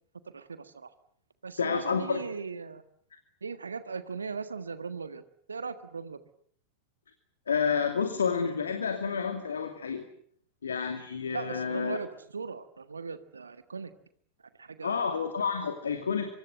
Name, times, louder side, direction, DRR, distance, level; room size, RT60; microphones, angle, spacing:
voice 1, 0.3-0.9 1.4-2.8 3.4-5.2 5.5-6.2 11.3-13.9 14.6-15.2, right 5 dB, 75° right, 12 dB, 1.5 m, -38 dB
voice 2, 1.6-2.2 7.5-10.1 10.6-12.0 14.8-16.3, left 6 dB, 70° left, 7 dB, 2.6 m, -29 dB
25.5 x 24.5 x 7.9 m, 0.63 s
figure-of-eight pair, 90°, 0 cm